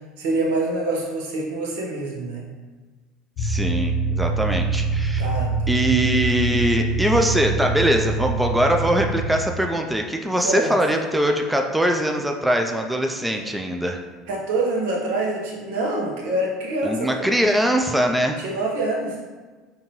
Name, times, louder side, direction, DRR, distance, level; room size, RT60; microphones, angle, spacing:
voice 1, 0.2-2.5 5.2-5.9 10.4-10.7 14.3-17.3 18.4-19.2, right 2 dB, 85° right, -2 dB, 1.0 m, -26 dB
sound 1, 3.4-9.4, right 3 dB, 65° left, 0.4 m, -24 dB
voice 2, 3.4-5.3 5.7-14.0 16.8-18.4, equal, 5° right, 3 dB, 0.3 m, -22 dB
5.2 x 2.8 x 2.9 m, 1.3 s
supercardioid pair, 120°, 0 cm